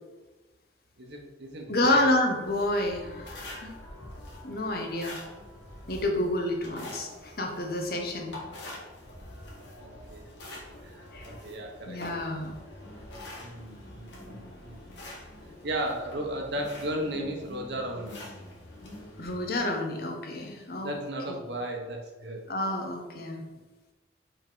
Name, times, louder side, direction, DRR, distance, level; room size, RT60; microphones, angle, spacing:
voice 1, 1.0-2.1 9.8-10.3 10.8-11.1 11.4-12.0 13.4-14.8 15.6-18.2 20.8-22.4, right 1 dB, 65° right, 1 dB, 1.0 m, -35 dB
voice 2, 1.7-3.8 4.4-5.2 5.9-8.3 11.1-11.3 11.8-12.5 19.2-20.9 22.5-23.4, left 1 dB, 55° left, 3 dB, 0.9 m, -29 dB
sound 1, 2.4-19.6, left 1 dB, 80° left, 1.5 m, -45 dB
5.2 x 4.6 x 3.8 m, 1.2 s
head